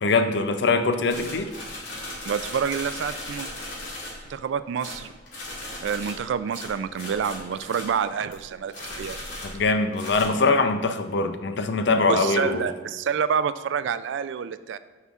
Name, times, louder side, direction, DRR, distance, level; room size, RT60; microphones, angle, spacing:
voice 1, 0.0-1.5 9.4-12.7, left 3 dB, 65° left, 8 dB, 0.5 m, -23 dB
sound 1, 1.1-4.4 4.8-8.4 8.7-10.3, left 1 dB, 80° left, 2.0 m, -37 dB
voice 2, 2.3-3.5 4.3-5.1 5.8-9.2 12.1-14.8, right 7 dB, 75° right, 14 dB, 0.3 m, -28 dB
9.4 x 5.5 x 2.4 m, 1.3 s
head